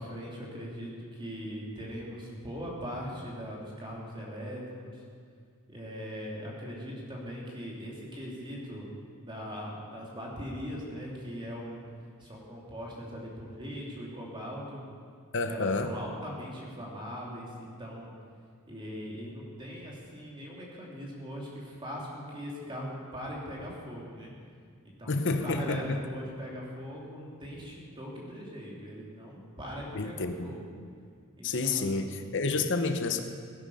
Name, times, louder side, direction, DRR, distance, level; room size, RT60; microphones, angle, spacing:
voice 1, 0.0-5.0 5.7-8.9 9.2-11.8 12.2-14.8 15.5-18.1 18.7-24.3 25.0-30.7 31.4-32.2, equal, 20° right, -4 dB, 2.9 m, -40 dB
voice 2, 15.3-15.9 25.1-26.0 29.9-30.5 31.4-33.2, left 3 dB, 55° left, 7 dB, 0.9 m, -29 dB
17.0 x 9.7 x 5.6 m, 2.1 s
head